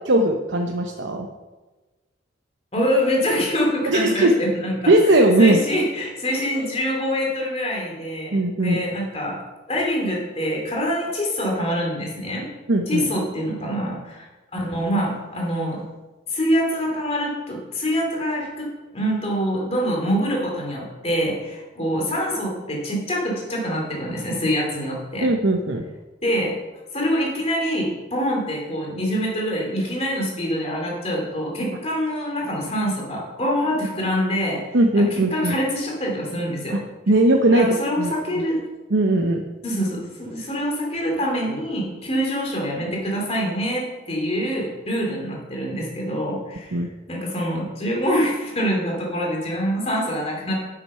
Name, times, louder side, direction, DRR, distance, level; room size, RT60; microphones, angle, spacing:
voice 1, 0.0-1.3 3.9-4.3 4.9-5.6 8.3-8.8 12.7-13.1 25.2-25.8 34.7-35.6 36.7-36.8 37.1-37.7 38.0-38.1 38.9-39.4 46.7-46.9, right 1 dB, 70° right, 3 dB, 0.8 m, -18 dB
voice 2, 2.7-9.4 9.7-12.4 12.9-15.8 16.3-18.7 18.9-25.3 26.2-26.5 26.9-34.6 35.0-36.8 37.5-38.6 39.6-46.8 47.1-50.5, equal, 30° left, -1 dB, 2.8 m, -25 dB
8.5 x 7.9 x 5.6 m, 1.2 s
head